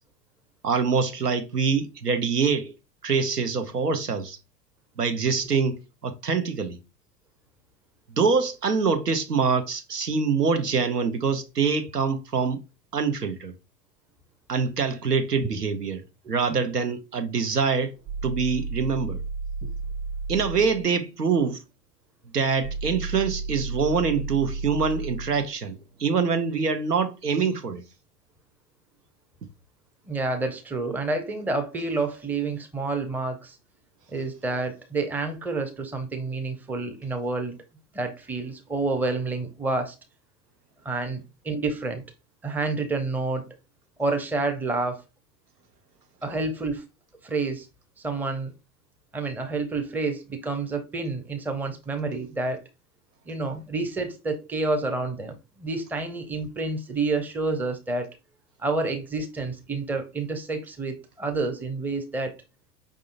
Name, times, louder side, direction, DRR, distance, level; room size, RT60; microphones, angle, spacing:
voice 1, 0.6-2.7 3.0-4.4 5.0-6.8 8.2-12.6 12.9-13.5 14.5-16.0 16.3-17.9 18.2-19.2 20.3-21.6 22.3-27.8, right 5 dB, 85° right, 0.8 m, -25 dB
sound 1, 17.5-20.9 22.6-26.8, right 4 dB, 50° right, 0.9 m, -34 dB
voice 2, 30.1-33.6 34.1-37.6 37.9-40.0 40.8-42.0 42.4-43.5 44.0-45.0 46.2-46.8 47.2-47.7 48.0-48.5 49.1-52.6 53.3-58.1 58.6-62.4, right 3 dB, 5° right, 0.6 m, -29 dB
5.2 x 3.6 x 2.5 m
figure-of-eight pair, 80°, 46 cm